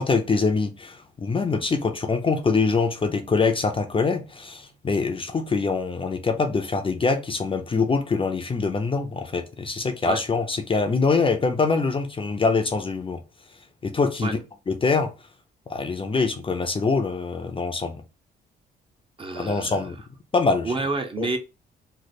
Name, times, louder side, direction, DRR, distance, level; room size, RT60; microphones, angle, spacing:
voice 1, 0.0-13.2 13.8-14.4 14.7-15.1 15.7-18.0 19.4-20.0 20.3-20.7 21.2-21.4, left 4 dB, 25° left, 0.5 m, -24 dB
voice 2, 19.2-19.9 20.6-21.4, right 3 dB, 25° right, 0.7 m, -28 dB
3.2 x 2.0 x 4.0 m
cardioid pair, 90°, 20 cm